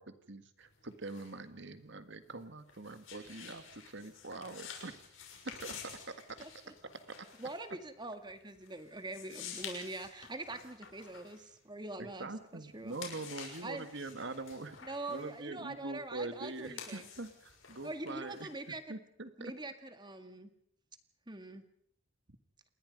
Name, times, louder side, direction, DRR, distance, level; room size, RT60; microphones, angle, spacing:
voice 1, 0.0-5.0 5.6-5.8 6.1-6.2 12.0-18.5 18.9-19.5, right 2 dB, 55° right, 10 dB, 1.8 m, -44 dB
sound 1, 0.6-12.3 12.7-18.8, left 6 dB, 65° left, 6.2 m, -50 dB
voice 2, 7.4-12.9 13.6-13.9 14.8-17.1 17.8-18.8 19.4-20.5 21.3-21.6, right 2 dB, 20° right, 8 dB, 1.8 m, -43 dB
28.5 x 21.0 x 5.3 m, 0.69 s
head